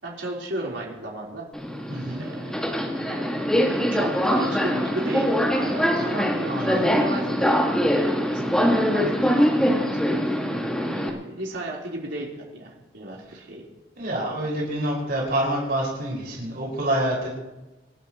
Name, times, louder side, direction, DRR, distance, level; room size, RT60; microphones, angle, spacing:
voice 1, 0.0-1.5 2.2-3.2 3.9-7.6 8.0-9.4 9.7-10.3 10.8-13.6 14.1-14.3, right 1 dB, 75° right, -3 dB, 4.1 m, -34 dB
Subway metro underground, 1.5-11.1, equal, 5° left, 2.0 m, -23 dB
voice 2, 1.9-2.2 6.5-6.8 14.0-17.3, right 1 dB, 55° right, -4 dB, 5.8 m, -27 dB
28.0 x 12.5 x 3.1 m, 1.0 s
head